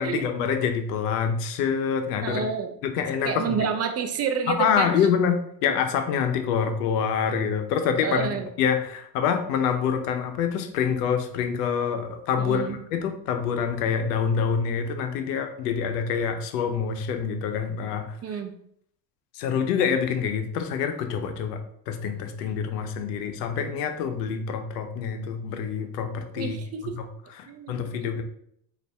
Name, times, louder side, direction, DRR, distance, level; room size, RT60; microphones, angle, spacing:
voice 1, 0.0-2.4 2.8-3.6 4.5-8.3 8.6-18.1 19.3-21.6 21.9-26.6 26.8-27.1 27.4-28.2, left 7 dB, 80° left, 7 dB, 0.7 m, -26 dB
voice 2, 2.2-2.8 3.2-4.9 8.0-8.5 12.4-12.8 18.2-18.5 26.3-27.0 27.5-28.1, right 6 dB, 35° right, 7 dB, 0.5 m, -29 dB
4.0 x 2.5 x 3.3 m, 0.68 s
hypercardioid pair, 75°, 47 cm